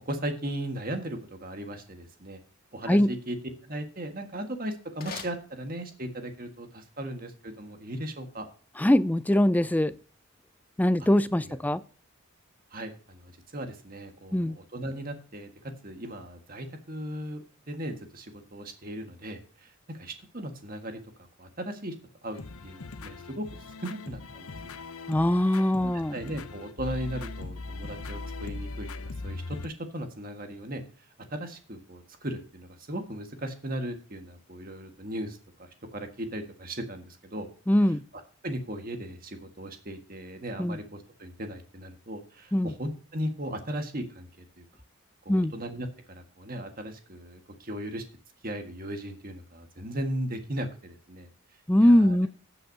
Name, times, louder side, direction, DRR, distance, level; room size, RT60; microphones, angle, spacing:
voice 1, 0.0-2.4 2.7-3.4 3.6-8.4 11.0-11.1 11.4-11.7 12.7-21.0 21.4-21.9 22.2-23.4 23.8-24.5 25.5-30.8 31.3-37.5 38.4-44.3 44.6-44.7 45.2-48.0 48.4-51.3 51.8-52.2, right 1 dB, 40° right, 5 dB, 1.6 m, -37 dB
sound 1, 4.8-6.2, left 5 dB, 40° left, 1.8 m, -45 dB
voice 2, 8.8-9.9 10.8-11.8 14.3-14.6 25.1-26.2 37.7-38.0 40.6-40.8 42.5-42.7 45.3-45.5 51.7-52.3, left 1 dB, 5° left, 15 dB, 0.3 m, -22 dB
sound 2, 22.3-29.7, left 3 dB, 75° left, 0.8 m, -40 dB
15.0 x 7.8 x 2.8 m, 0.41 s
head